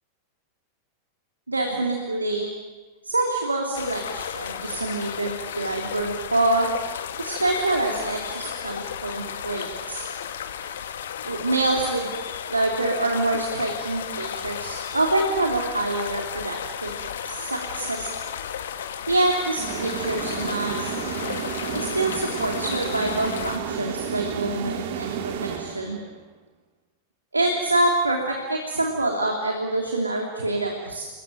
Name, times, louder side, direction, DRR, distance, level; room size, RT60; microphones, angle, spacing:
voice 1, 1.5-2.5 3.0-6.7 7.2-10.1 11.2-12.1 12.5-17.0 17.2-18.1 19.1-20.9 21.7-26.0 27.3-31.1, right 2 dB, 80° right, 2 dB, 3.0 m, -26 dB
sound 1, 3.7-23.6, left 8 dB, 60° left, 1.7 m, -34 dB
sound 2, 19.6-26.2, right 7 dB, 55° right, 2.4 m, -32 dB
28.0 x 22.0 x 9.2 m, 1.3 s
figure-of-eight pair, 90°, 0 cm